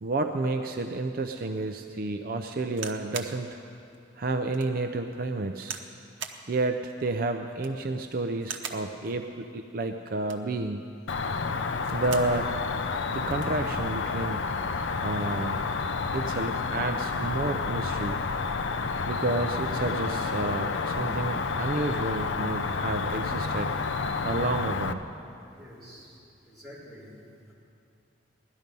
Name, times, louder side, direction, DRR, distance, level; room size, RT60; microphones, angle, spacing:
voice 1, 0.0-3.6 4.2-5.8 6.5-10.9 11.9-12.5 13.1-14.5 15.0-15.6 16.1-18.2 19.1-23.7 24.2-25.0, right 2 dB, 50° right, 5 dB, 0.5 m, -30 dB
sound 1, 2.8-3.4 3.9-4.0 4.5-4.7 5.6-5.9 6.2-6.4 7.5-7.9 8.4-8.9 10.1-10.5 11.7-12.4 12.8-12.9 13.1-13.6 14.4-14.7, right 7 dB, 75° right, 0.9 m, -39 dB
Cricket, 11.1-24.9, left 4 dB, 75° left, 0.6 m, -30 dB
voice 2, 25.5-26.2 26.4-27.2, equal, ahead, -11 dB, 3.9 m, -48 dB
17.0 x 12.5 x 5.3 m, 2.6 s
head